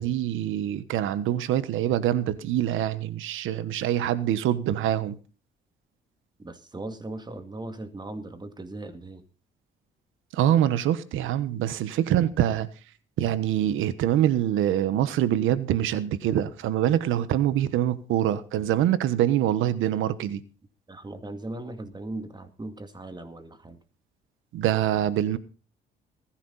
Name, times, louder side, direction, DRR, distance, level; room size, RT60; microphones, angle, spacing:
voice 1, 0.0-5.2 10.3-12.7 13.2-20.4 24.5-25.4, right 11 dB, 90° right, 1.2 m, -25 dB
voice 2, 6.4-9.2 20.9-23.8, right 2 dB, 20° right, 2.2 m, -38 dB
20.5 x 10.5 x 4.1 m
cardioid pair, 90°, 20 cm